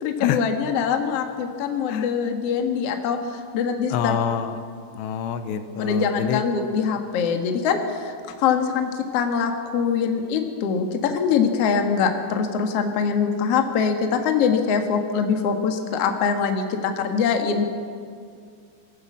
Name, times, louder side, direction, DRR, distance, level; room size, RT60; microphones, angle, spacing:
voice 1, 0.0-4.2 5.8-17.7, left 6 dB, 55° left, 4 dB, 1.7 m, -23 dB
voice 2, 3.9-4.6 5.0-6.4, left 8 dB, 85° left, 9 dB, 3.1 m, -26 dB
22.5 x 14.5 x 8.5 m, 2.2 s
omnidirectional pair, 5.0 m